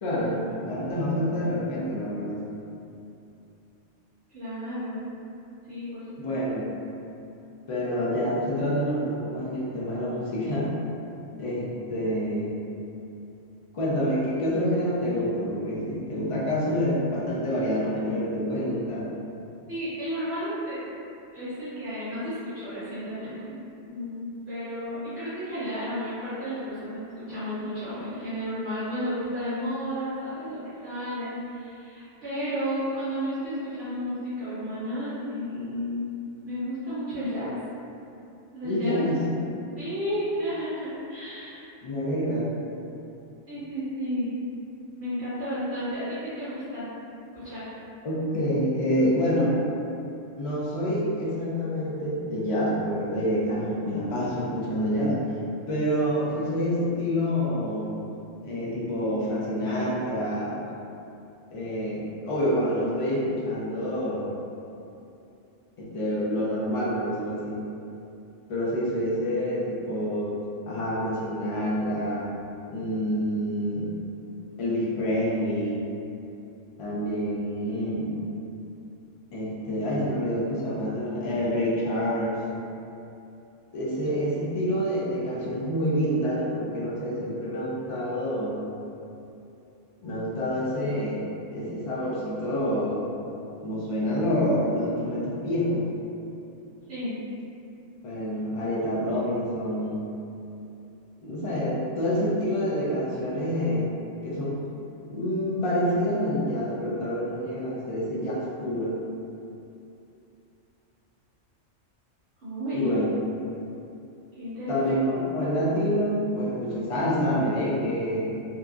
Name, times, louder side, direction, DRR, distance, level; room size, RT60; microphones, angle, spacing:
voice 1, 0.0-2.4 6.2-6.6 7.7-10.7 11.4-12.6 13.7-19.1 38.6-39.2 41.8-42.5 48.0-49.5 50.4-55.2 55.7-57.9 58.4-60.6 61.5-64.3 65.8-67.6 68.5-70.4 70.7-72.3 72.7-73.9 74.6-75.9 76.8-78.1 79.3-82.4 83.7-88.6 90.0-91.2 91.5-93.0 93.6-95.8 98.0-100.1 101.2-103.8 104.2-104.6 105.1-109.0 112.7-113.1 114.7-118.3, equal, 60° left, -7 dB, 0.3 m, -27 dB
voice 2, 4.3-5.1 5.6-6.4 19.7-20.8 21.3-23.6 23.8-36.1 36.4-37.5 38.5-39.0 39.8-41.7 43.5-44.3 45.0-46.9 47.3-47.7 96.9-97.1 112.4-112.9 114.4-114.8, equal, 65° right, -13 dB, 0.9 m, -32 dB
2.8 x 2.4 x 2.3 m, 2.7 s
omnidirectional pair, 1.3 m